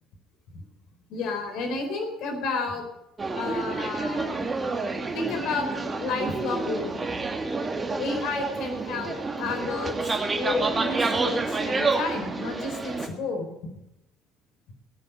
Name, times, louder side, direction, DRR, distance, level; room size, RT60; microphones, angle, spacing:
voice 1, 1.1-2.8 3.3-4.4 5.1-5.7 6.0-7.2 8.0-13.5, left 3 dB, 60° left, 5 dB, 4.0 m, -31 dB
sound 1, 3.2-13.1, right 3 dB, 25° right, 2.3 m, -29 dB
17.5 x 9.3 x 7.7 m, 0.87 s
figure-of-eight pair, 55°, 0 cm